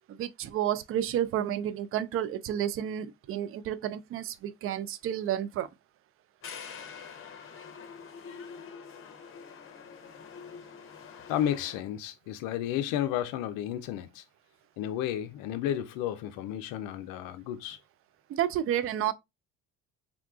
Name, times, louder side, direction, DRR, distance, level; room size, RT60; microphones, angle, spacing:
voice 1, 0.2-5.7 18.3-19.1, right 11 dB, 40° right, 0.4 m, -31 dB
sound 1, 6.4-11.8, left 6 dB, 40° left, 0.7 m, -45 dB
voice 2, 11.3-14.2 14.8-17.8, left 11 dB, 70° left, 0.5 m, -32 dB
3.7 x 2.3 x 2.3 m
supercardioid pair, 80°, 34 cm